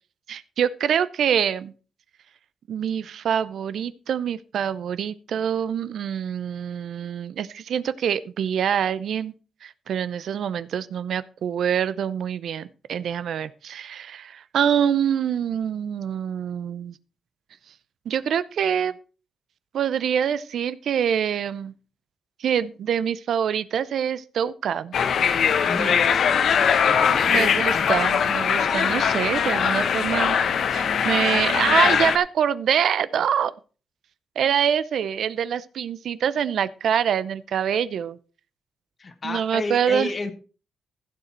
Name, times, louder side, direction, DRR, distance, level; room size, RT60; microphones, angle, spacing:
voice 1, 0.3-1.7 2.7-9.3 9.6-16.9 18.1-18.9 19.7-21.7 22.4-24.9 25.8-26.0 27.3-30.4 30.7-33.5 34.4-38.2 39.2-40.1, right 8 dB, 70° right, 0.6 m, -25 dB
sound 1, 24.9-32.2, left 7 dB, 60° left, 1.1 m, -21 dB
voice 2, 25.7-26.1 26.9-27.3 39.0-40.3, left 3 dB, 30° left, 1.5 m, -31 dB
15.5 x 6.7 x 4.4 m
wide cardioid pair, 155°, 0 cm